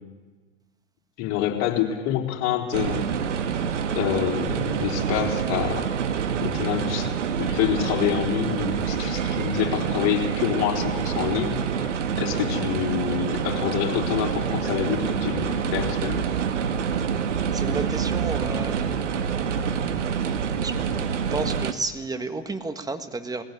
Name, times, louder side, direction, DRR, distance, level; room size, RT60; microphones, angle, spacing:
voice 1, 1.2-3.1 4.0-5.9 6.4-7.1 7.4-11.9 12.2-16.2, left 11 dB, 45° left, 1 dB, 4.3 m, -27 dB
sound 1, 2.7-21.7, right 7 dB, 80° right, 1.7 m, -26 dB
voice 2, 17.3-19.0 20.6-20.8 21.3-23.4, right 3 dB, 10° right, 9 dB, 1.7 m, -31 dB
21.0 x 16.5 x 10.0 m, 1.4 s
hypercardioid pair, 100°, 35 cm